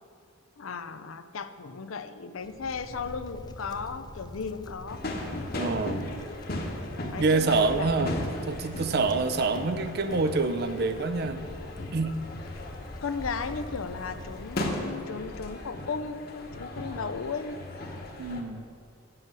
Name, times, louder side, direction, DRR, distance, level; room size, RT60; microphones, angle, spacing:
voice 1, 0.6-5.0 5.9-6.2 7.1-7.9 13.0-17.6, left 5 dB, 85° left, 11 dB, 0.6 m, -35 dB
Wind, 2.4-15.2, left 1 dB, 20° left, 0.5 m, -45 dB
sound 1, 4.9-18.4, left 1 dB, 50° left, 1.1 m, -37 dB
voice 2, 5.6-6.0 7.2-8.1 8.5-11.4 11.9-12.2 18.2-18.6, right 3 dB, 50° right, 10 dB, 0.5 m, -26 dB
9.1 x 7.7 x 6.1 m, 2.3 s
head